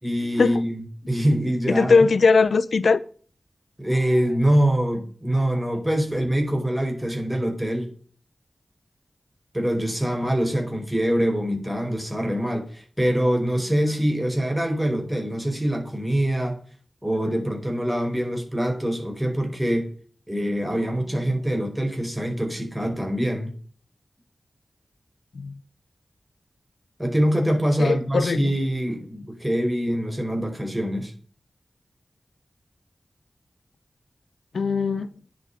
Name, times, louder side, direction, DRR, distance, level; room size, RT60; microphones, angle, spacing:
voice 1, 0.0-2.1 3.8-7.9 9.5-16.6 17.0-19.9 20.3-23.5 27.0-31.1, equal, 10° right, 4.9 m, -24 dB
voice 2, 1.7-3.0 25.4-25.5 27.8-28.5 34.5-35.1, left 4 dB, 90° left, 0.7 m, -20 dB
10.5 x 7.1 x 8.7 m
wide cardioid pair, 95°, 0 cm